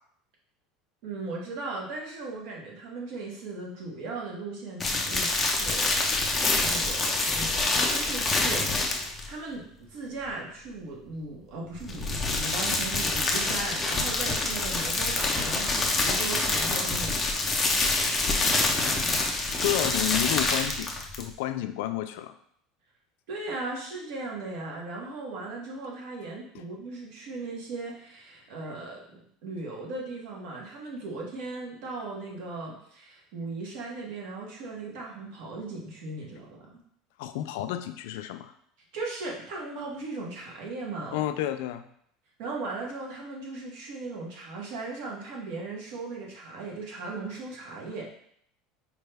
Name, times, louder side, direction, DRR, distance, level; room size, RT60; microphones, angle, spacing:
voice 1, 1.0-6.0 6.6-17.6 23.3-36.8 38.9-41.2 42.4-48.1, right 3 dB, 65° right, -2 dB, 1.1 m, -37 dB
sound 1, 4.8-9.3 11.7-21.3, left 3 dB, 15° left, 0.5 m, -26 dB
voice 2, 19.6-22.3 26.5-26.6 37.2-38.5 41.1-41.8, left 13 dB, 75° left, 9 dB, 0.3 m, -31 dB
4.5 x 2.2 x 3.3 m, 0.66 s
cardioid pair, 160°, 0 cm